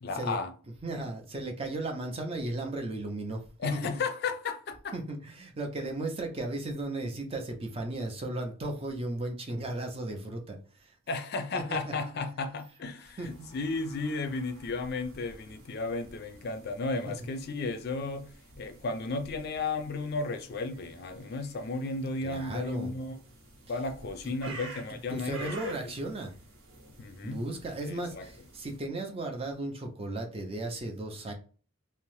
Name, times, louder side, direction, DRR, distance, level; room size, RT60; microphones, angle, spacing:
voice 1, 0.0-0.5 3.6-4.9 5.8-5.9 11.1-18.3 18.6-23.2 23.7-25.9 27.0-27.4 27.8-28.3, left 3 dB, 50° left, 0.4 m, -34 dB
voice 2, 0.8-3.5 3.7-4.0 4.9-10.9 11.5-11.8 13.2-13.5 22.2-22.9 24.2-24.6 24.9-26.3 27.2-31.3, right 2 dB, 25° right, 0.5 m, -35 dB
sound 1, 13.2-28.8, right 2 dB, 90° right, 0.9 m, -51 dB
2.7 x 2.0 x 3.0 m
head